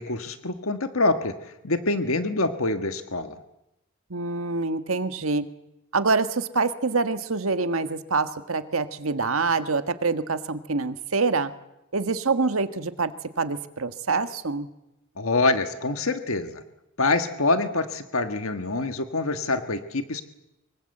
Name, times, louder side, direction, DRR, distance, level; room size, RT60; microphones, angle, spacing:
voice 1, 0.0-3.4 15.2-16.6 17.0-20.2, left 3 dB, 80° left, 8 dB, 1.6 m, -25 dB
voice 2, 4.1-5.4 5.9-11.5 11.9-13.1 13.4-14.7, right 4 dB, 80° right, 10 dB, 1.6 m, -25 dB
25.0 x 23.5 x 7.9 m, 0.89 s
head